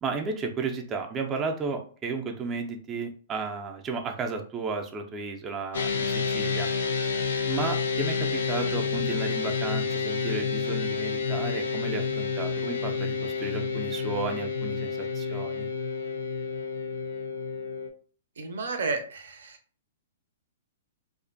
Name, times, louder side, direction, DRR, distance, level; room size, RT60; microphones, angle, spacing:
voice 1, 0.0-6.7 7.5-15.7, right 4 dB, 20° right, 3 dB, 0.3 m, -33 dB
sound 1, 5.7-17.9, left 5 dB, 80° left, 0.4 m, -29 dB
voice 2, 18.4-19.6, right 3 dB, 85° right, 7 dB, 0.5 m, -32 dB
2.4 x 2.1 x 2.5 m, 0.42 s
hypercardioid pair, 150°, 0 cm